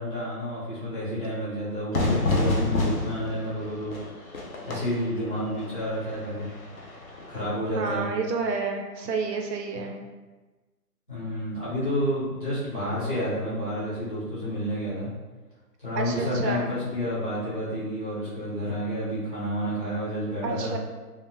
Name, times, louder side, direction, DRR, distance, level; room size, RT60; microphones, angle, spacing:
voice 1, 0.0-4.3 4.7-6.5 7.3-8.1 11.1-15.1 15.8-20.7, equal, 35° left, -11 dB, 0.9 m, -30 dB
Fire / Fireworks, 1.9-7.5, left 2 dB, 60° left, 0.5 m, -29 dB
voice 2, 7.8-10.0 16.0-16.7 20.4-20.8, right 4 dB, 85° right, 3 dB, 0.6 m, -29 dB
2.1 x 2.0 x 3.0 m, 1.2 s
hypercardioid pair, 175°, 48 cm